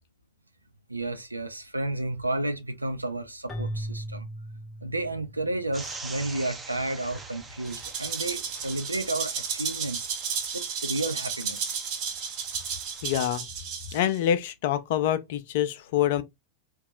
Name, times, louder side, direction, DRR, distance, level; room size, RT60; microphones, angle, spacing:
voice 1, 0.9-4.3 4.8-10.1 10.5-11.8, right 2 dB, 85° right, 0.5 m, -32 dB
Keyboard (musical), 3.5-5.7, right 1 dB, 25° left, 0.7 m, -37 dB
sound 1, 5.7-13.2, right 3 dB, 15° right, 0.6 m, -45 dB
Rattle (instrument), 7.6-14.2, right 6 dB, 40° right, 1.0 m, -33 dB
voice 2, 13.0-13.4 13.9-16.2, left 11 dB, 50° left, 0.4 m, -26 dB
3.8 x 2.2 x 2.7 m
figure-of-eight pair, 90°, 0 cm